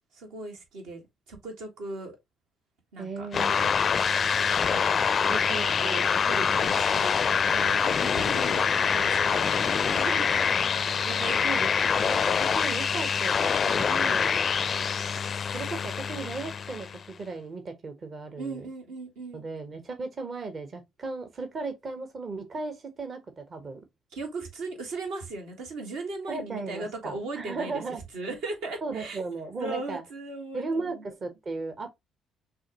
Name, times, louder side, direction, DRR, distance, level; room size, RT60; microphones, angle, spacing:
voice 1, 0.1-2.1 2.9-3.3 3.6-3.8 4.7-4.8 5.2-10.7 11.1-11.5 13.9-14.3 18.4-19.4 24.1-27.8 28.1-29.2 29.6-31.1, right 3 dB, 70° right, 1.4 m, -38 dB
voice 2, 3.0-3.8 5.3-6.0 11.0-14.4 15.5-18.7 19.3-23.8 26.3-28.0 28.8-30.0 30.5-31.9, right 3 dB, 45° right, 0.9 m, -36 dB
sound 1, 3.3-17.0, left 6 dB, 45° left, 0.4 m, -25 dB
6.2 x 2.6 x 2.9 m
hypercardioid pair, 45°, 0 cm